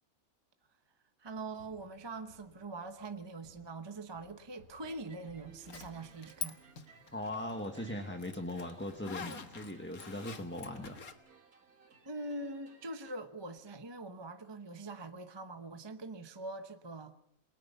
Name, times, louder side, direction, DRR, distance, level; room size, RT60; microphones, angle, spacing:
voice 1, 1.2-6.6 12.0-17.2, right 2 dB, 20° right, 8 dB, 1.0 m, -43 dB
sound 1, 1.3-8.8, left 1 dB, 55° left, 7.8 m, -65 dB
sound 2, 4.8-13.1, right 4 dB, 85° right, 2.4 m, -61 dB
Zipper (clothing), 5.7-6.5 6.8-11.1, left 5 dB, 80° left, 2.0 m, -45 dB
voice 2, 7.1-11.0, left 1 dB, 10° left, 4 dB, 1.4 m, -39 dB
29.0 x 20.5 x 5.6 m, 0.76 s
omnidirectional pair, 1.5 m